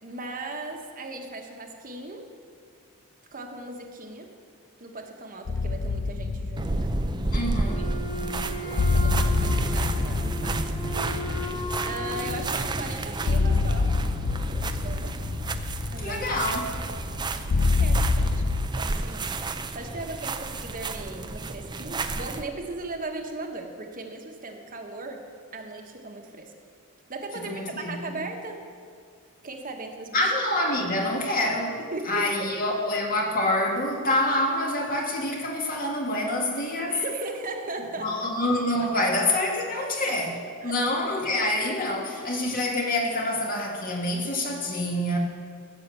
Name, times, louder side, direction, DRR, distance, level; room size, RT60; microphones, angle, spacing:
voice 1, 0.0-2.3 3.3-4.3 4.8-6.9 8.3-10.7 11.8-14.0 14.5-15.1 15.9-16.3 17.8-19.4 19.7-25.2 25.5-26.5 27.1-28.6 29.4-30.2 31.9-32.5 36.9-38.3 38.8-39.1 39.8-40.2 40.6-40.7 41.4-41.5, right 2 dB, 40° right, 3 dB, 1.3 m, -38 dB
sound 1, 5.5-18.7, left 3 dB, 85° left, 0.6 m, -27 dB
sound 2, 6.6-22.4, right 2 dB, 20° right, 0.5 m, -32 dB
voice 2, 7.3-7.9 16.0-16.7 27.4-28.2 30.1-37.0 38.0-45.2, left 1 dB, 40° left, 0 dB, 1.8 m, -27 dB
Wind instrument woodwind instrument, 7.6-12.5, equal, 25° left, 1.0 m, -36 dB
15.0 x 8.2 x 6.9 m, 2.2 s
head